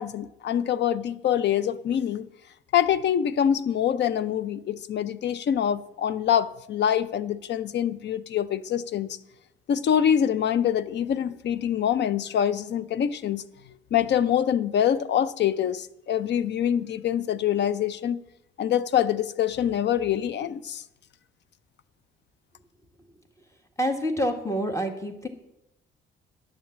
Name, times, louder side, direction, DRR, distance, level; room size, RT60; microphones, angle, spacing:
voice 1, 0.0-2.3 2.7-9.2 9.7-13.4 13.9-18.2 18.6-20.8, left 9 dB, 60° left, 0.6 m, -25 dB
voice 2, 23.8-25.3, equal, 15° left, 1.8 m, -27 dB
10.5 x 7.2 x 7.3 m
cardioid pair, 90°, 20 cm